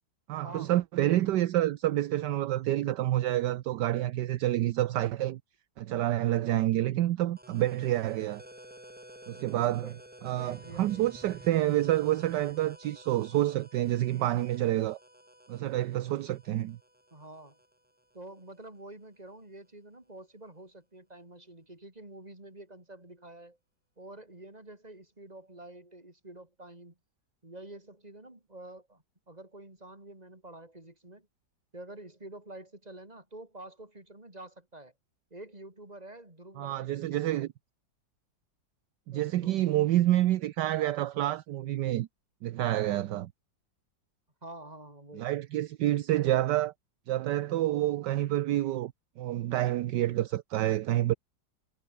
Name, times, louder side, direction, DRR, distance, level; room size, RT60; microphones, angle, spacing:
voice 1, 0.3-5.4 5.8-8.4 9.3-9.9 10.2-15.0 15.5-16.8 36.6-37.5 39.1-42.1 42.4-43.3 45.1-46.7 47.1-48.9 49.2-51.1, right 14 dB, 70° right, 1.3 m, -28 dB
sound 1, 7.4-18.8, right 1 dB, 5° right, 1.9 m, -53 dB
voice 2, 9.5-10.0 10.3-11.1 17.1-17.6 18.1-23.6 24.0-27.0 27.4-31.3 31.7-34.9 35.3-37.2 39.1-39.7 44.4-45.3, right 1 dB, 20° right, 4.5 m, -48 dB
omnidirectional pair, 2.0 m